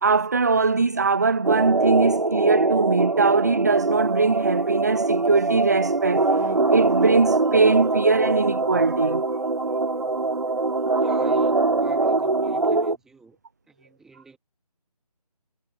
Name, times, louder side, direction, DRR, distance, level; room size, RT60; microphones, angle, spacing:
voice 1, 0.0-9.2, right 4 dB, 25° right, 0.5 m, -21 dB
sound 1, 1.4-13.0, right 3 dB, 65° right, 2.8 m, -23 dB
voice 2, 10.9-13.4 13.7-14.4, right 4 dB, ahead, 2.7 m, -47 dB
figure-of-eight pair, 160°, 20 cm